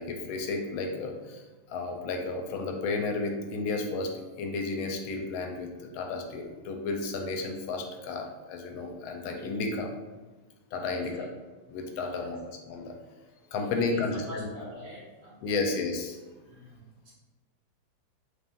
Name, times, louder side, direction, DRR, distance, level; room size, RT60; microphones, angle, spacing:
voice 1, 0.0-1.4 1.7-9.9 10.7-11.3 11.7-13.0 13.5-14.5 15.4-16.2, left 3 dB, 85° left, 3 dB, 1.4 m, -32 dB
voice 2, 10.8-11.2 12.0-12.3 13.6-15.7 16.4-16.9, equal, 60° right, -7 dB, 1.9 m, -45 dB
4.0 x 3.5 x 2.5 m, 1.2 s
omnidirectional pair, 2.2 m